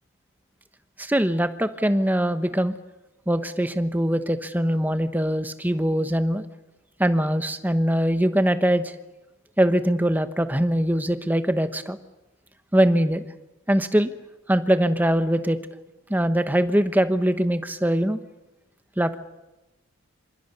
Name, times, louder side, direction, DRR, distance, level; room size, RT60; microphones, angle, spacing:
voice 1, 1.0-2.7 3.3-6.4 7.0-8.9 9.6-12.0 12.7-13.2 13.7-14.1 14.5-15.6 16.1-18.2 19.0-19.2, right 1 dB, 10° right, 10 dB, 1.1 m, -22 dB
27.0 x 26.0 x 7.0 m, 1.0 s
head